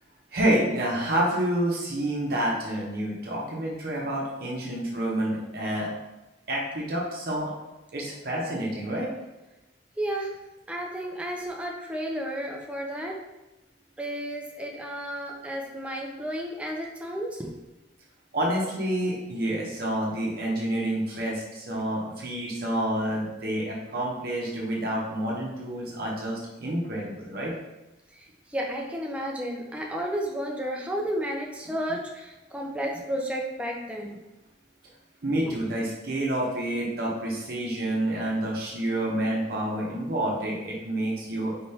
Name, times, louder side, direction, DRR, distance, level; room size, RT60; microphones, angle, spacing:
voice 1, 0.3-5.9 6.5-7.5 7.9-9.1 18.3-27.5 31.9-32.0 35.2-41.5, right 1 dB, 60° right, -3 dB, 0.8 m, -28 dB
voice 2, 10.0-10.3 10.7-13.2 14.0-17.5 28.5-34.2, equal, 5° right, -1 dB, 0.5 m, -32 dB
4.3 x 3.4 x 2.8 m, 1.0 s
head